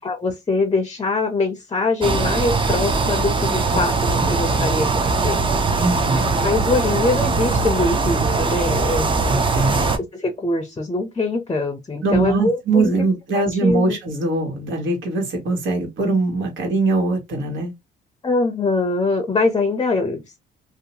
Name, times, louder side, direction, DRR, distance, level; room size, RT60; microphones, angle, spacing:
voice 1, 0.0-5.4 6.4-9.2 10.1-12.9 13.3-14.0 18.2-20.4, left 3 dB, 20° left, 0.5 m, -23 dB
sound 1, 2.0-10.0, right 3 dB, 25° right, 0.5 m, -21 dB
voice 2, 4.1-4.7 5.8-6.3 9.1-9.8 12.0-17.7, right 3 dB, 75° right, 1.3 m, -22 dB
2.7 x 2.1 x 2.8 m
cardioid pair, 90°, 20 cm